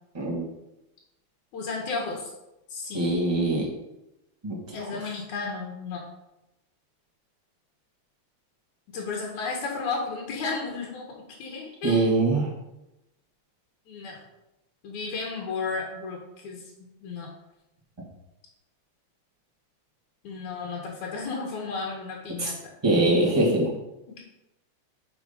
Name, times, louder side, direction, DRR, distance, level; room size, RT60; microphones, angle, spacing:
voice 1, 1.5-2.3 2.7-3.1 4.7-6.0 8.9-11.1 11.4-12.1 13.9-14.2 14.8-17.3 20.2-22.7 24.1-24.2, left 4 dB, 85° left, -2 dB, 2.9 m, -33 dB
voice 2, 2.9-3.7 4.4-5.0 11.8-12.5 22.4-22.5 22.8-23.7, right 2 dB, 10° right, -4 dB, 2.0 m, -23 dB
9.2 x 5.9 x 5.4 m, 0.93 s
omnidirectional pair, 3.3 m